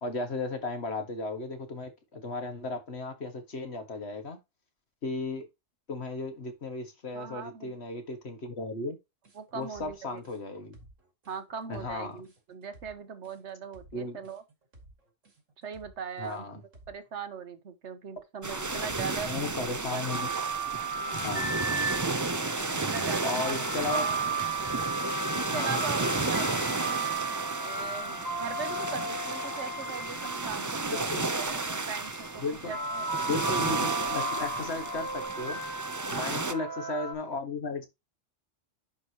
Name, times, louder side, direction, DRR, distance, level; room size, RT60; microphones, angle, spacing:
voice 1, 0.0-4.4 5.0-5.5 5.9-9.0 9.5-10.8 11.7-12.2 13.9-14.2 16.2-16.6 19.2-20.3 21.2-21.4 23.2-24.1 25.5-25.9 30.9-31.3 32.4-32.7 33.2-35.6 36.1-37.9, left 3 dB, 60° left, 2.0 m, -35 dB
voice 2, 7.1-7.7 9.3-10.2 11.3-14.4 15.6-16.5 16.9-19.4 19.9-20.0 21.1-21.5 22.9-23.7 23.9-24.2 25.3-27.1 27.6-31.0 31.3-33.0 36.1-36.4, right 6 dB, 70° right, 1.3 m, -40 dB
sound 1, 9.2-17.1, right 1 dB, 85° right, 2.9 m, -56 dB
sound 2, 18.4-36.5, right 3 dB, 20° right, 0.5 m, -33 dB
sound 3, 20.1-31.0 31.9-37.1, right 2 dB, 15° left, 1.3 m, -35 dB
10.5 x 4.9 x 3.0 m
omnidirectional pair, 1.3 m